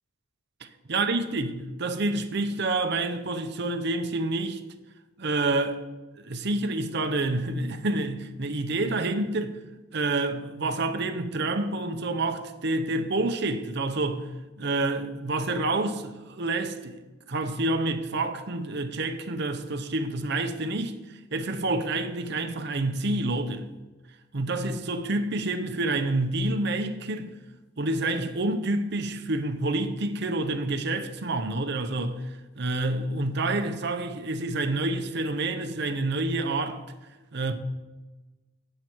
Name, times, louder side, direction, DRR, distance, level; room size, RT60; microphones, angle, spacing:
voice 1, 0.6-4.6 5.2-5.8 6.2-9.6 9.9-14.3 14.6-17.0 17.3-23.7 24.3-27.3 27.8-32.2 32.6-36.8 37.3-37.5, right 2 dB, 60° right, 0.8 m, -28 dB
9.4 x 7.6 x 4.5 m
head